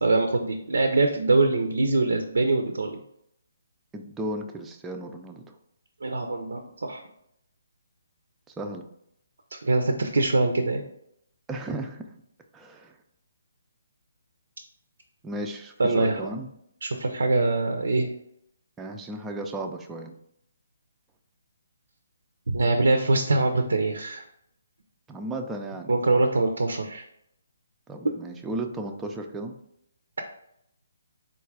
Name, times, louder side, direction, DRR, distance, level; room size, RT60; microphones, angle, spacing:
voice 1, 0.0-3.0 6.0-7.0 9.5-10.8 15.8-16.2 16.8-18.1 22.5-24.2 25.9-27.0, right 2 dB, 85° right, 5 dB, 0.5 m, -23 dB
voice 2, 3.9-5.5 8.6-8.9 11.5-12.1 12.5-12.9 15.2-16.5 18.8-20.1 25.1-25.9 27.9-29.5, right 1 dB, 10° right, 3 dB, 0.4 m, -34 dB
3.9 x 2.3 x 4.6 m, 0.75 s
hypercardioid pair, 155°, 0 cm